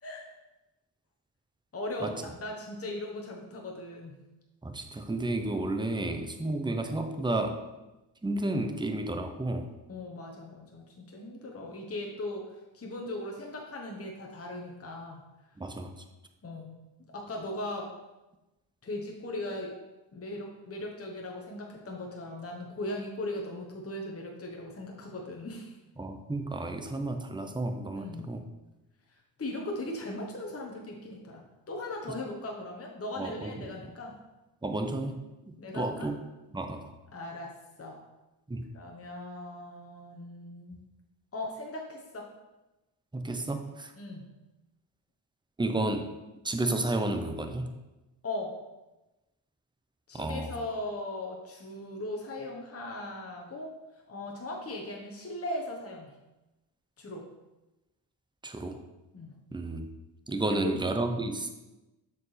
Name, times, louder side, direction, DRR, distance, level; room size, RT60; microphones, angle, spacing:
voice 1, 1.7-4.2 6.5-6.6 9.9-15.2 16.4-16.7 17.1-17.9 18.8-19.7 20.1-25.8 27.9-28.3 29.4-34.2 35.6-36.1 37.1-38.0 38.7-40.8 41.3-42.3 44.0-44.3 48.2-48.5 50.1-53.7 54.1-56.1 57.0-57.3 59.1-59.3 60.4-60.7, left 1 dB, 30° left, -1 dB, 1.2 m, -38 dB
voice 2, 4.6-7.6 8.2-9.7 15.6-15.9 26.0-28.4 33.2-33.7 34.6-35.2 35.5-36.2 36.5-36.9 38.5-38.6 43.1-43.9 45.6-46.1 46.4-47.7 50.1-50.5 58.4-58.8 59.5-59.9 60.3-61.5, right 2 dB, 10° right, 6 dB, 0.8 m, -32 dB
6.7 x 4.6 x 3.4 m, 1.0 s
supercardioid pair, 55°, 48 cm